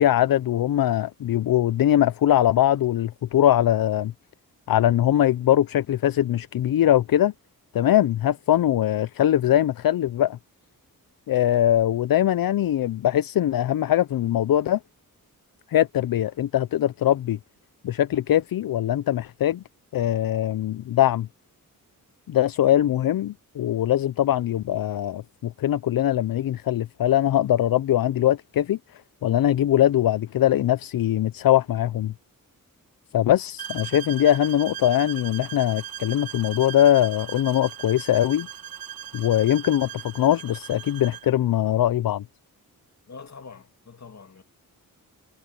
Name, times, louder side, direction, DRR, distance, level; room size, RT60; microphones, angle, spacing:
voice 1, 0.0-4.1 4.7-7.3 7.7-10.4 11.3-14.8 15.7-17.4 17.8-19.6 19.9-21.3 22.3-32.1 33.1-38.5 39.1-42.2, left 12 dB, 75° left, 0.6 m, -22 dB
sound 1, 33.6-41.3, right 10 dB, 80° right, 1.7 m, -38 dB
voice 2, 43.1-44.4, left 5 dB, 50° left, 2.7 m, -44 dB
wide cardioid pair, 90°, 35 cm